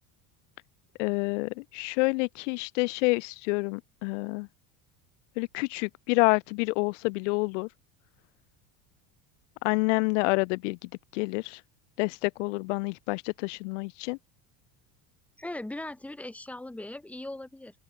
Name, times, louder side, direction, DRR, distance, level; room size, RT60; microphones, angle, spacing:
voice 1, 1.0-4.5 5.4-7.7 9.6-11.6 12.0-14.2, left 28 dB, 90° left, 3.6 m, -28 dB
voice 2, 15.4-17.7, left 1 dB, 5° left, 5.9 m, -39 dB
open air
cardioid pair, 180°, 35 cm